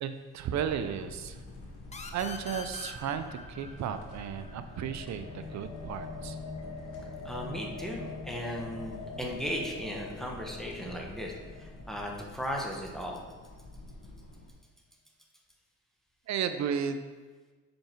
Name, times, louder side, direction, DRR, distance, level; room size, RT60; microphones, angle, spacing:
voice 1, 0.0-1.4 2.1-6.4 16.3-17.0, right 8 dB, 65° right, 10 dB, 0.5 m, -34 dB
sound 1, 0.5-14.5, left 2 dB, 80° left, 1.2 m, -48 dB
sound 2, 1.9-5.3, left 4 dB, 25° left, 0.7 m, -45 dB
sound 3, 3.4-13.2, left 4 dB, 65° left, 1.1 m, -45 dB
voice 2, 7.2-13.2, equal, ahead, -1 dB, 1.1 m, -36 dB
5.7 x 5.2 x 4.5 m, 1.4 s
cardioid pair, 90°, 30 cm